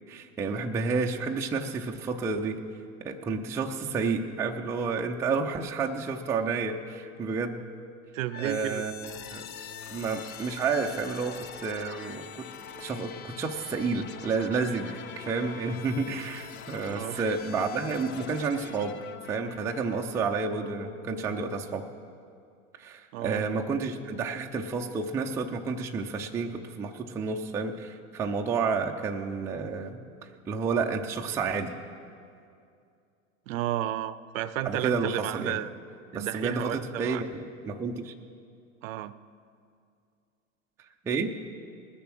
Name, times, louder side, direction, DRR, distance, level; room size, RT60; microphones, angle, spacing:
voice 1, 0.1-2.6 3.0-7.6 8.4-9.5 9.9-12.5 12.8-19.0 19.3-21.9 22.8-30.0 30.5-31.7 34.6-35.6 36.1-37.3 37.6-38.1 41.0-41.3, right 4 dB, 5° right, 2 dB, 0.3 m, -30 dB
voice 2, 8.1-8.8 16.9-17.3 23.1-23.4 33.5-35.7 36.1-37.2 38.8-39.1, right 13 dB, 65° right, 16 dB, 0.6 m, -32 dB
sound 1, 8.3-22.2, left 8 dB, 75° left, 0.9 m, -44 dB
19.5 x 7.0 x 6.1 m, 2.4 s
hypercardioid pair, 120°, 42 cm